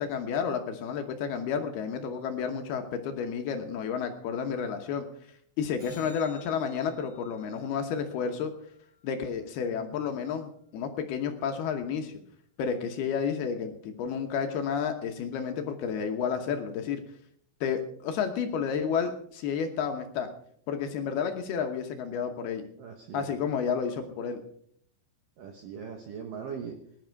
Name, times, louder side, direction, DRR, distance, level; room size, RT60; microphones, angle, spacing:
voice 1, 0.0-5.1 5.6-8.5 9.0-12.2 12.6-17.0 17.6-20.3 20.7-22.6 23.1-24.4, left 7 dB, 70° left, 5 dB, 2.6 m, -31 dB
sound 1, 5.8-10.3 16.8-16.9, equal, 30° right, 7.0 m, -56 dB
voice 2, 22.8-23.4 25.4-26.8, right 7 dB, 75° right, 4 dB, 2.0 m, -40 dB
19.0 x 11.0 x 4.6 m, 0.63 s
omnidirectional pair, 5.6 m